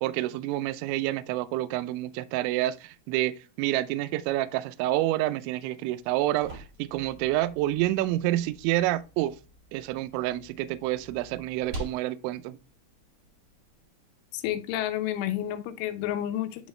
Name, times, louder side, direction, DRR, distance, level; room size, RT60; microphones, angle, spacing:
voice 1, 0.0-9.4 9.7-12.6, right 15 dB, 85° right, 2.7 m, -28 dB
sound 1, 5.9-13.9, equal, 60° right, 1.4 m, -46 dB
voice 2, 14.3-16.7, left 12 dB, 85° left, 3.2 m, -30 dB
10.5 x 3.5 x 3.1 m
omnidirectional pair, 5.6 m